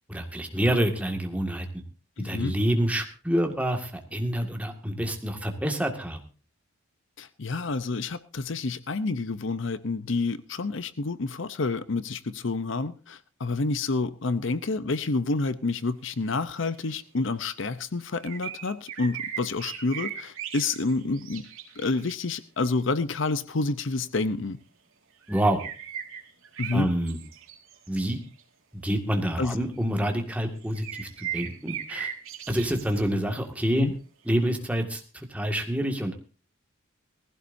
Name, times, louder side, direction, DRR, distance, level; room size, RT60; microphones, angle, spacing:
voice 1, 0.1-1.7 2.2-6.2 25.3-25.6 26.7-27.2 27.9-28.2 28.7-32.1 32.5-33.9 34.3-35.0 35.3-36.2, equal, 5° right, 1.9 m, -27 dB
voice 2, 2.2-2.6 7.2-21.4 21.8-24.6 26.6-26.9 29.4-29.6 33.7-33.9, left 3 dB, 60° left, 0.7 m, -29 dB
sound 1, 16.7-17.3 18.2-22.4 25.2-28.4 29.1-29.2 29.8-30.1 30.5-33.0 34.3-34.4, right 9 dB, 75° right, 3.5 m, -38 dB
19.0 x 15.5 x 2.7 m
head